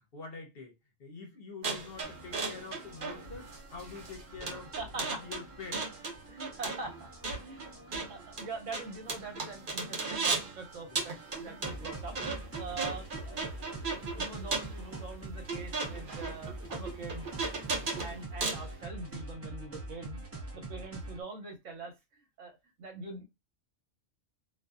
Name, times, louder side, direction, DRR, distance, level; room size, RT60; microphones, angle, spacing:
voice 1, 0.1-0.7 1.0-5.8 9.7-9.9 10.9-11.2 11.4-11.7 12.8-13.0 17.8-18.0 20.6-20.7, left 4 dB, 55° left, 0.8 m, -46 dB
sound 1, 1.6-10.6 10.9-18.7, right 4 dB, 50° right, 0.8 m, -36 dB
sound 2, 2.0-21.2, right 2 dB, 15° right, 0.5 m, -45 dB
voice 2, 4.8-5.2 6.3-7.1 7.4-7.7 8.1-13.8 14.1-17.6 18.0-20.2 20.5-23.2, right 3 dB, 75° right, 1.2 m, -43 dB
2.6 x 2.3 x 2.2 m
omnidirectional pair, 1.3 m